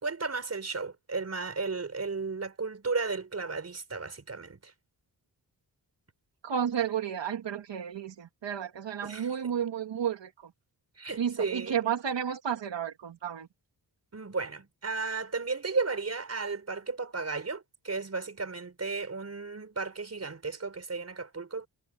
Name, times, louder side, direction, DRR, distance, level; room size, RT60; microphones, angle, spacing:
voice 1, 0.0-4.7 9.0-9.5 11.0-11.8 14.1-21.7, right 4 dB, 35° right, 5.4 m, -34 dB
voice 2, 6.4-10.3 11.2-13.5, right 8 dB, 90° right, 1.8 m, -32 dB
wide cardioid pair, 170°, 42 cm